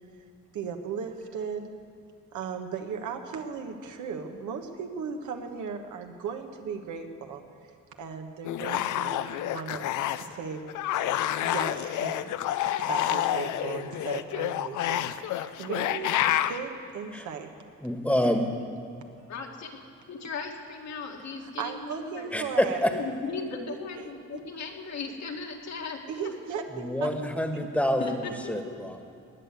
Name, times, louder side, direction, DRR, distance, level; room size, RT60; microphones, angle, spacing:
voice 1, 0.5-1.7 2.3-7.4 8.0-9.9 10.2-10.7 11.4-12.4 12.8-16.1 16.5-17.5 18.2-18.4 21.4-22.8 23.7-24.1 26.1-27.1 27.5-27.6, right 6 dB, 75° right, 5 dB, 1.3 m, -36 dB
sound 1, 8.4-10.4 10.7-16.6, left 12 dB, 80° left, 0.6 m, -29 dB
voice 2, 17.8-18.4 22.3-22.9 26.7-28.2 28.5-29.1, left 1 dB, 5° left, 5 dB, 1.5 m, -27 dB
voice 3, 19.3-19.7 20.1-22.4 22.9-26.3 28.0-28.8, left 4 dB, 60° left, 1 dB, 2.0 m, -37 dB
19.0 x 6.6 x 9.4 m, 2.5 s
cardioid pair, 90°, 30 cm